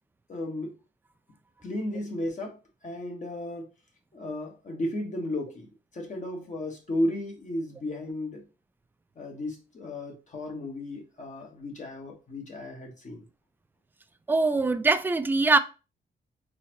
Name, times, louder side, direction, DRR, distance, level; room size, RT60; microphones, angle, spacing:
voice 1, 0.3-0.7 1.6-2.6 2.8-3.7 4.1-8.4 9.2-13.2, left 1 dB, 40° left, 1.3 m, -34 dB
voice 2, 14.3-15.6, right 3 dB, 10° right, 0.3 m, -22 dB
4.1 x 3.8 x 3.0 m
cardioid pair, 135°, 19 cm